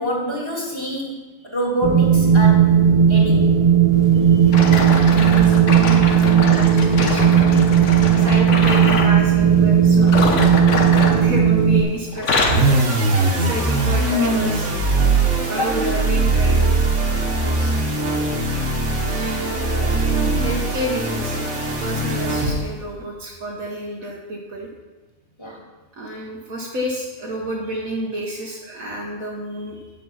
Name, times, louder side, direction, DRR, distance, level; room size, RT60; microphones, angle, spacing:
voice 1, 0.0-2.7 3.1-3.5 8.1-8.4 15.5-15.7 17.4-17.7 25.4-25.6, right 1 dB, 20° left, -3 dB, 2.2 m, -26 dB
Wind, 1.8-11.8, right 8 dB, 40° right, 0.5 m, -15 dB
voice 2, 4.3-7.3 8.2-10.6 11.1-14.8 15.5-16.7 19.1-21.5 21.8-24.7 25.9-29.9, right 1 dB, 80° right, -3 dB, 1.6 m, -30 dB
sound 1, 4.5-9.2 10.0-11.8 12.1-12.7 13.3-13.5 14.2-14.3, left 3 dB, 60° left, 1.3 m, -24 dB
sound 2, 12.4-22.8, right 2 dB, 60° right, 1.7 m, -20 dB
9.3 x 6.5 x 5.7 m, 1.2 s
omnidirectional pair, 1.4 m